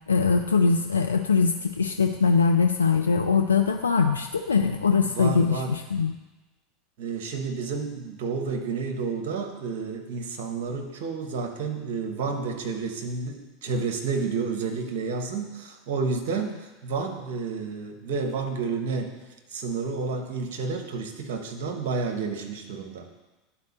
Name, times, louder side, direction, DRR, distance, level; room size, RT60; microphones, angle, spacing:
voice 1, 0.1-6.1, left 5 dB, 85° left, 5 dB, 0.3 m, -22 dB
voice 2, 5.0-5.7 7.0-16.5 16.8-19.2 19.5-23.1, right 4 dB, 65° right, 4 dB, 0.9 m, -30 dB
11.0 x 4.2 x 2.9 m, 1.1 s
hypercardioid pair, 80°, 0 cm